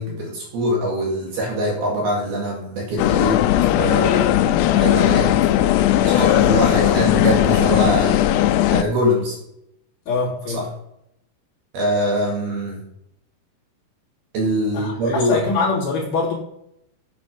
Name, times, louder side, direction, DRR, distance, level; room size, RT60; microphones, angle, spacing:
voice 1, 0.0-3.5 3.7-4.4 4.7-5.3 6.0-9.4 10.5-10.7 11.7-12.8 14.3-15.5, equal, 60° right, -1 dB, 3.5 m, -23 dB
sound 1, 3.0-8.8, left 12 dB, 85° left, 2.4 m, -17 dB
voice 2, 10.1-10.6 14.7-16.3, left 4 dB, 45° left, -6 dB, 4.1 m, -23 dB
9.7 x 8.2 x 5.3 m, 0.78 s
omnidirectional pair, 5.7 m